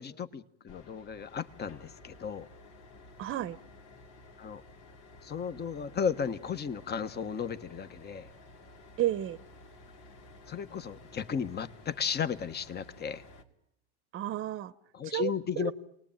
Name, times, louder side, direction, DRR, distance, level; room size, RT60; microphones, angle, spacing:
voice 1, 0.0-2.5 4.4-4.6 5.2-8.3 10.5-13.2 14.9-15.7, left 7 dB, 30° left, 12 dB, 1.4 m, -34 dB
sound 1, 0.7-13.4, left 2 dB, 75° left, 2.8 m, -54 dB
voice 2, 3.2-3.6 9.0-9.4 14.1-14.7 15.0-15.3 15.6-15.7, right 13 dB, 40° right, 15 dB, 1.0 m, -31 dB
28.0 x 19.5 x 9.1 m, 0.82 s
supercardioid pair, 100°, 33 cm